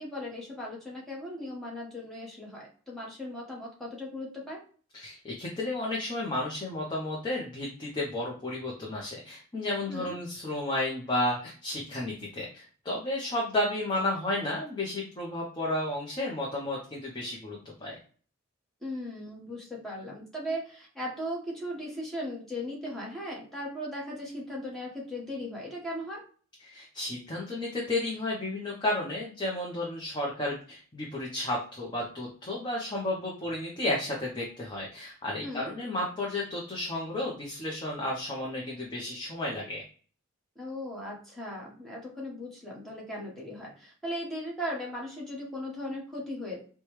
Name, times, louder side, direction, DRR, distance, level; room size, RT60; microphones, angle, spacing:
voice 1, 0.0-4.6 9.9-10.1 18.8-26.2 35.4-35.7 40.5-46.6, equal, ahead, -4 dB, 1.2 m, -37 dB
voice 2, 4.9-18.0 26.6-39.8, left 1 dB, 20° left, -4 dB, 0.7 m, -32 dB
4.8 x 2.3 x 3.0 m, 0.42 s
head